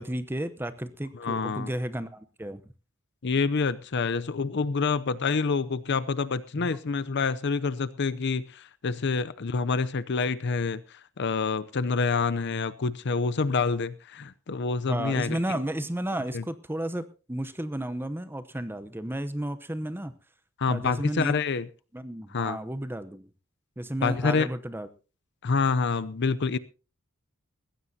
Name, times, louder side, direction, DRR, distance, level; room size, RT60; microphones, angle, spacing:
voice 1, 0.0-2.6 6.5-6.7 14.9-20.1 20.7-21.4 21.9-23.3 23.8-24.9, right 1 dB, 10° right, 12 dB, 0.8 m, -33 dB
voice 2, 1.1-1.7 3.2-10.8 11.2-15.4 16.3-16.4 20.6-21.7 22.3-22.6 24.0-24.5 25.4-26.6, left 4 dB, 55° left, 15 dB, 0.6 m, -27 dB
20.0 x 15.5 x 2.8 m, 0.33 s
head